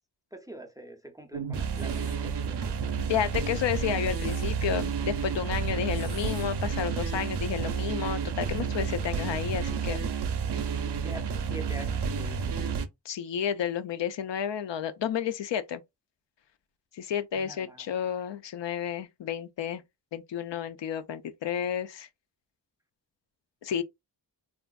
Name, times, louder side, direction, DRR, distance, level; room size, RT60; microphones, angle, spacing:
voice 1, 0.3-3.0 10.8-12.4 17.3-17.8, right 1 dB, 10° right, 0.4 m, -45 dB
sound 1, 1.3-12.9, right 6 dB, 70° right, 0.5 m, -30 dB
sound 2, 1.7-2.2 3.8-4.5 5.9-6.5, left 3 dB, 60° left, 1.3 m, -51 dB
voice 2, 3.1-10.1 13.1-15.8 16.9-19.8 20.1-22.1 23.6-23.8, left 8 dB, 80° left, 0.5 m, -31 dB
3.3 x 2.5 x 2.2 m
wide cardioid pair, 125°, 42 cm